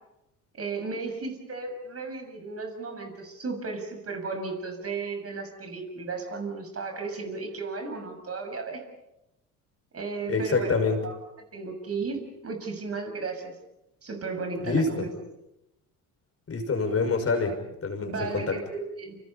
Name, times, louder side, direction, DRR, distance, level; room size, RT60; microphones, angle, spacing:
voice 1, 0.5-8.8 9.9-10.8 11.0-11.2 11.5-13.5 14.0-15.1 18.0-19.2, right 4 dB, 35° right, 4 dB, 7.0 m, -34 dB
voice 2, 10.3-11.0 14.6-15.1 16.5-18.6, left 4 dB, 30° left, 5 dB, 6.0 m, -26 dB
29.0 x 28.0 x 5.7 m, 0.88 s
hypercardioid pair, 60°, 43 cm